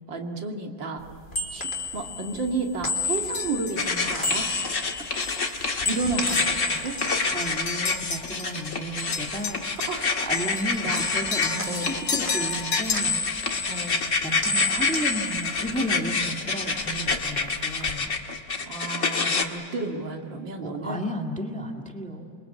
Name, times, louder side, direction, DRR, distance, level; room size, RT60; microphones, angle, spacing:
voice 1, 0.1-1.0 1.5-4.5 5.8-7.0 9.9-10.1 10.8-11.0 11.7-11.9 13.7-14.0 18.6-21.0, right 3 dB, 75° right, 2 dB, 2.9 m, -31 dB
sound 1, 1.0-8.3 8.6-10.0 10.3-16.3 16.6-17.9, left 3 dB, 25° left, 3.3 m, -32 dB
sound 2, 3.3-3.8 4.4-4.5 5.2-5.5 5.9-8.7 9.0-12.9, left 5 dB, 80° left, 2.4 m, -33 dB
sound 3, 3.8-19.4, left 4 dB, 45° left, 1.9 m, -28 dB
voice 2, 7.3-9.7 10.2-13.6 14.2-18.1 20.6-22.3, right 1 dB, 5° left, 2 dB, 1.8 m, -33 dB
28.0 x 23.5 x 8.4 m, 2.5 s
omnidirectional pair, 2.0 m